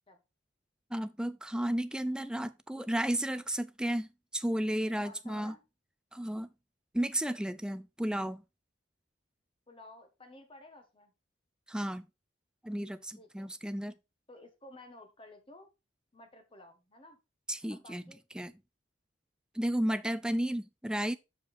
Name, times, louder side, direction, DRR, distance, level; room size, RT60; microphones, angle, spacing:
voice 1, 0.9-4.1 4.3-5.5 6.1-6.5 6.9-8.4 11.7-12.1 12.6-13.9 17.5-18.0 18.3-18.5 19.5-21.2, right 1 dB, 5° right, 0.4 m, -33 dB
voice 2, 5.0-5.6 9.7-11.1 13.2-13.5 14.3-15.7 16.1-17.2 17.7-18.2, left 1 dB, 30° left, 1.4 m, -53 dB
6.7 x 5.0 x 4.2 m
head